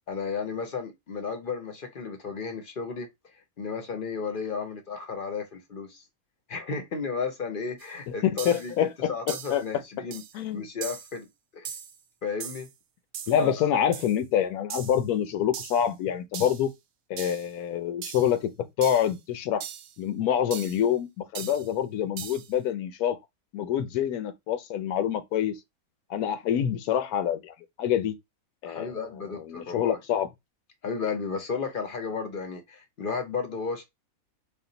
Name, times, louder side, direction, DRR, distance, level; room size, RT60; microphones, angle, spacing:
voice 1, 0.1-6.1 6.5-10.2 10.5-11.3 11.5-11.7 12.2-12.7 13.4-13.9 28.6-30.0 30.8-33.8, left 5 dB, 50° left, 0.6 m, -34 dB
sound 1, 7.8-7.9 8.4-8.7 9.3-9.6 10.1-10.4 10.8-11.2 11.6-12.0 12.4-12.7 13.1-13.4 13.9-14.2 14.7-15.0 15.5-15.9 16.3-16.7 17.2-17.5 18.0-18.4 18.8-19.1 19.6-19.9 20.5-20.8 21.4-21.7 22.2-22.5, right 9 dB, 70° right, 0.9 m, -39 dB
voice 2, 8.2-9.6 10.3-10.7 13.3-16.7 17.1-19.6 20.0-23.2 23.5-25.6 26.1-27.5 27.8-28.1 28.6-28.9 29.5-30.3, left 9 dB, 85° left, 1.1 m, -26 dB
3.6 x 2.4 x 3.8 m
omnidirectional pair, 1.5 m